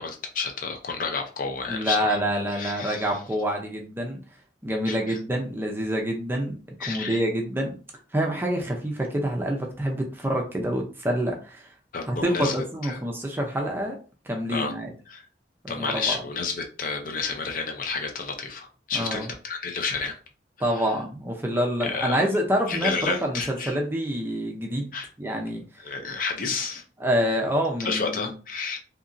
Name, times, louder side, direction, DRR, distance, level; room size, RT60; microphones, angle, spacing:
voice 1, 0.0-2.2 2.5-3.1 4.9-5.2 6.8-7.2 11.9-12.6 12.8-13.0 14.5-14.7 15.1-15.2 15.7-20.1 20.7-20.9 21.8-22.3 22.7-23.7 24.9-25.1 25.8-26.8 27.8-28.8, left 4 dB, 50° left, 0.5 m, -30 dB
voice 2, 1.7-4.2 4.6-6.6 6.9-7.8 8.1-11.7 12.1-14.0 14.3-14.9 15.6-16.2 18.9-19.3 20.6-24.9 25.2-25.6 27.0-28.3, equal, 10° right, 0.5 m, -27 dB
2.8 x 2.5 x 2.5 m
head